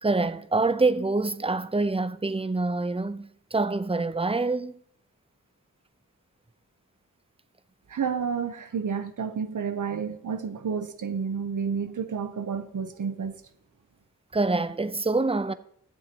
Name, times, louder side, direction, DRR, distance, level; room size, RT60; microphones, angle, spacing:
voice 1, 0.0-4.7 14.3-15.5, right 3 dB, 20° right, 0.7 m, -26 dB
voice 2, 7.9-13.4, right 6 dB, 70° right, 0.9 m, -30 dB
20.0 x 7.3 x 3.0 m
cardioid pair, 50°, 32 cm